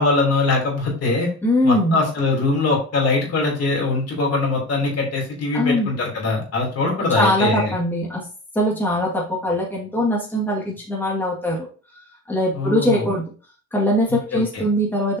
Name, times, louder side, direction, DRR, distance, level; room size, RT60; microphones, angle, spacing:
voice 1, 0.0-1.3 1.6-7.8 12.5-13.1 14.3-14.6, left 3 dB, 55° left, -1 dB, 3.5 m, -22 dB
voice 2, 1.4-2.0 5.5-5.9 7.1-8.2 8.5-11.7 12.3-13.2 13.7-15.2, equal, 5° left, -3 dB, 2.3 m, -21 dB
6.9 x 5.2 x 2.9 m, 0.37 s
cardioid pair, 90°, 30 cm